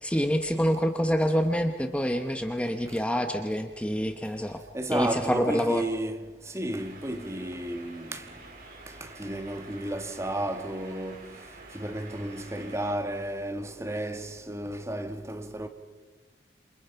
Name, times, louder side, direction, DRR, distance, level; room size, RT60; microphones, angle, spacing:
voice 1, 0.0-4.6 4.9-5.8, equal, 5° left, 1.0 m, -26 dB
voice 2, 4.7-6.2 6.5-8.2 9.0-11.3 11.7-15.7, right 1 dB, 15° right, 1.5 m, -33 dB
sound 1, 6.7-12.9, right 3 dB, 55° right, 5.1 m, -48 dB
28.5 x 27.5 x 5.8 m
head